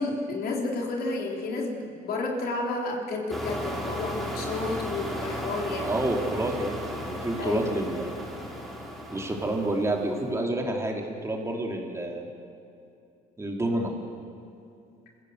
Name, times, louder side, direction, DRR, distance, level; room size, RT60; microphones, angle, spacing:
voice 1, 0.0-5.9 7.4-7.7, left 2 dB, 65° left, 0 dB, 3.8 m, -31 dB
sound 1, 3.3-10.3, equal, ahead, 3.6 m, -35 dB
voice 2, 5.8-8.3 9.1-12.3 13.4-13.9, right 1 dB, 15° right, 1 dB, 3.2 m, -29 dB
26.0 x 16.0 x 8.1 m, 2.5 s
cardioid pair, 110°, 17 cm